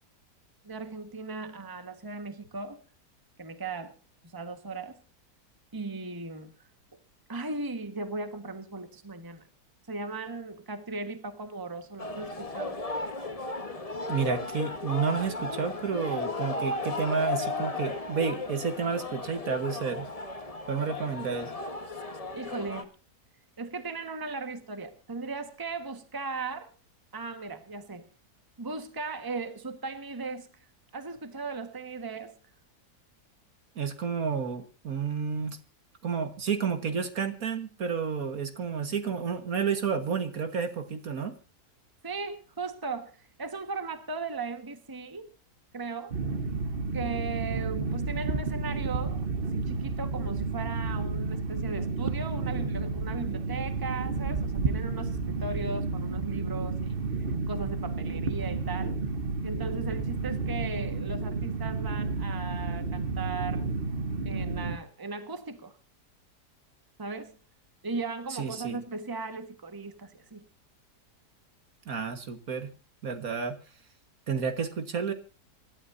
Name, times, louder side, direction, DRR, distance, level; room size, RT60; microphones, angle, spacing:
voice 1, 0.6-2.8 3.4-4.0 4.3-5.0 5.7-6.5 7.3-9.4 9.9-12.9 22.4-22.9 23.6-26.7 27.1-28.1 28.6-30.5 30.9-32.3 42.0-45.3 45.7-46.2 46.9-57.0 57.5-59.0 59.4-63.6 64.2-65.8 67.0-67.4 67.8-70.4, right 3 dB, 15° right, 1.3 m, -37 dB
sound 1, 12.0-22.8, left 3 dB, 25° left, 1.3 m, -35 dB
voice 2, 14.1-20.1 20.7-21.5 33.8-35.6 36.0-41.3 68.3-68.8 71.9-72.7 73.0-73.6 74.3-75.1, right 6 dB, 60° right, 1.8 m, -30 dB
sound 2, 46.1-64.8, right 4 dB, 40° right, 1.1 m, -31 dB
26.0 x 12.5 x 2.7 m
omnidirectional pair, 1.8 m